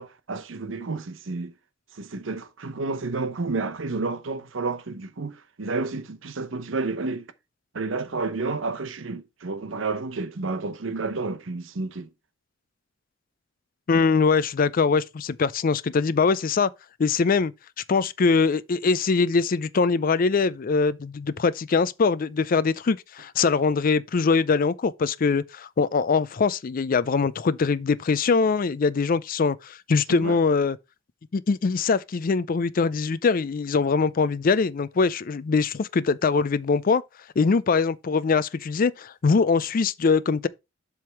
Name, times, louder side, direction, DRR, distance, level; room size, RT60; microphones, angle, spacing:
voice 1, 0.0-1.5 1.9-7.3 7.7-12.1 30.1-30.4, right 3 dB, 75° right, 0.8 m, -30 dB
voice 2, 13.9-16.7 17.0-17.5 17.9-30.8 31.3-37.0 37.4-40.5, left 4 dB, 45° left, 0.4 m, -22 dB
7.6 x 3.6 x 5.7 m
head